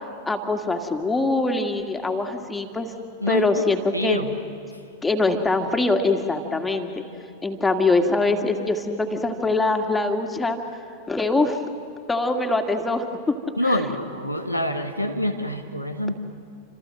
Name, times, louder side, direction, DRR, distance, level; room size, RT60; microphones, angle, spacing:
voice 1, 0.3-2.9 3.3-4.3 5.0-7.0 7.4-10.6 11.1-11.6 12.1-13.3 13.6-13.8, left 3 dB, 10° left, 4 dB, 2.1 m, -23 dB
voice 2, 3.9-4.3 13.6-16.2, left 1 dB, 90° right, 6 dB, 1.7 m, -26 dB
28.0 x 27.0 x 7.7 m, 2.4 s
figure-of-eight pair, 90°, 0 cm